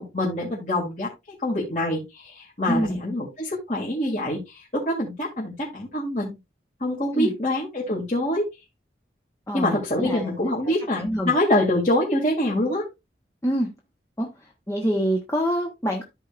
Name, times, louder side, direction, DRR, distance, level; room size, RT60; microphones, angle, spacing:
voice 1, 0.0-6.4 6.8-8.4 9.5-12.9, left 1 dB, 40° left, 2.6 m, -25 dB
voice 2, 2.7-3.0 7.1-7.3 9.5-10.3 10.6-11.3 13.4-13.7 14.2-14.3 14.7-16.0, equal, 15° left, 1.2 m, -26 dB
14.0 x 4.7 x 2.5 m
head